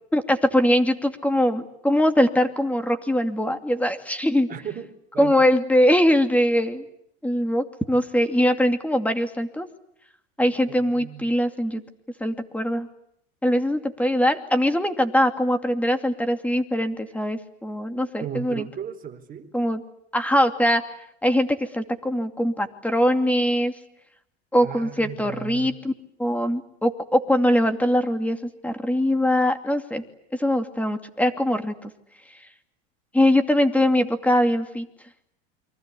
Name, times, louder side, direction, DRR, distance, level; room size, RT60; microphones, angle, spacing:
voice 1, 0.1-4.5 5.2-6.8 7.2-9.7 10.4-11.8 12.2-12.9 13.4-18.6 19.5-19.8 20.1-20.8 21.2-21.5 21.7-23.7 24.5-25.9 26.2-28.4 28.6-30.0 30.4-31.9 33.1-34.9, equal, 5° left, 8 dB, 2.6 m, -22 dB
voice 2, 4.5-4.9 5.1-5.5 10.7-11.3 18.2-19.5 24.6-25.8, right 9 dB, 25° right, 4 dB, 4.4 m, -36 dB
29.5 x 24.0 x 8.4 m, 0.75 s
supercardioid pair, 125°, 34 cm